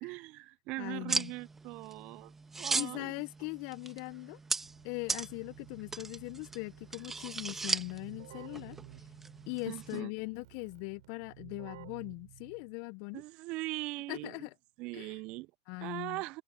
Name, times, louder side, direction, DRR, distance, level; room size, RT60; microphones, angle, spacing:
voice 1, 0.0-2.3 2.6-3.1 9.7-10.1 13.1-14.5 14.8-15.5 15.8-16.4, right 22 dB, 50° right, 0.7 m, -40 dB
voice 2, 0.8-1.3 2.7-4.4 4.8-8.8 9.5-13.2 14.1-14.5 14.9-15.2 15.7-16.2, left 30 dB, 55° left, 0.9 m, -40 dB
sound 1, 1.1-10.0, right 4 dB, 15° right, 2.0 m, -38 dB
Keyboard (musical), 4.6-12.9, right 17 dB, 65° right, 5.7 m, -54 dB
hypercardioid pair, 100°, 2 cm